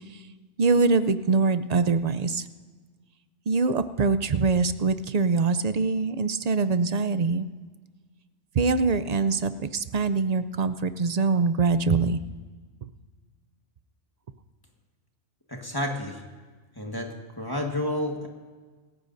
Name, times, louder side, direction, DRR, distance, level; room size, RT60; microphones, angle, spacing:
voice 1, 0.6-2.4 3.5-7.5 8.6-12.2, right 4 dB, 50° right, 12 dB, 0.5 m, -23 dB
voice 2, 15.5-16.2 16.7-18.3, left 1 dB, 20° left, 1 dB, 1.5 m, -30 dB
26.0 x 14.5 x 2.6 m, 1.4 s
omnidirectional pair, 1.2 m